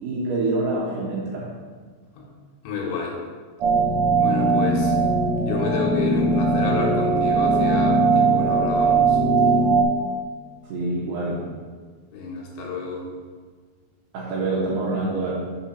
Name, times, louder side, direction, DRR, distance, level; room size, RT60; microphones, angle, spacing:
voice 1, 0.0-1.5 10.7-11.4 14.1-15.3, right 2 dB, 70° right, -5 dB, 2.6 m, -26 dB
voice 2, 2.6-3.2 4.2-4.9 5.4-9.2 12.1-13.1, left 4 dB, 75° left, -2 dB, 3.3 m, -29 dB
sound 1, 3.6-9.8, right 3 dB, 90° right, 1.8 m, -20 dB
6.8 x 4.5 x 5.6 m, 1.5 s
omnidirectional pair, 5.5 m